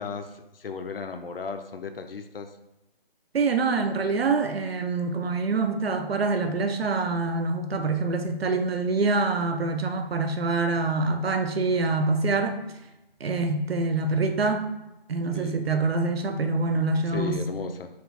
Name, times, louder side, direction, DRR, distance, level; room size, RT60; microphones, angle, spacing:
voice 1, 0.0-2.5 15.3-15.6 17.1-17.9, left 5 dB, 70° left, 7 dB, 0.5 m, -35 dB
voice 2, 3.3-12.6 13.2-14.7 15.1-17.4, right 3 dB, 75° right, 6 dB, 0.6 m, -25 dB
3.3 x 2.4 x 4.0 m, 0.97 s
figure-of-eight pair, 175°, 30 cm